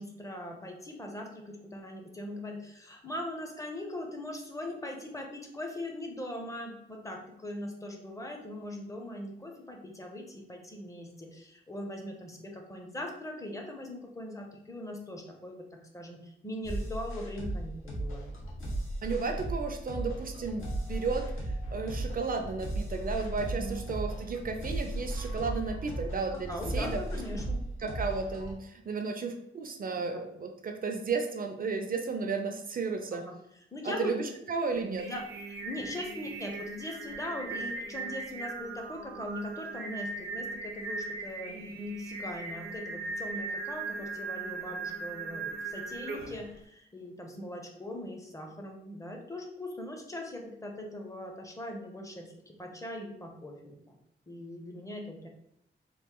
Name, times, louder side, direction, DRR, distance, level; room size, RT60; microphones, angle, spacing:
voice 1, 0.0-18.3 23.6-23.8 26.3-27.6 30.0-30.3 33.1-33.3 33.7-34.1 35.0-54.0 54.3-55.3, left 1 dB, 15° left, 2 dB, 0.5 m, -40 dB
sound 1, 16.6-28.5, right 1 dB, 90° left, 0.9 m, -36 dB
voice 2, 19.0-27.0 27.8-33.2 33.8-35.1, right 4 dB, 45° right, 5 dB, 0.4 m, -33 dB
Singing, 34.8-46.5, right 3 dB, 80° right, 0.6 m, -39 dB
3.0 x 2.4 x 3.6 m, 0.77 s
wide cardioid pair, 150°, 21 cm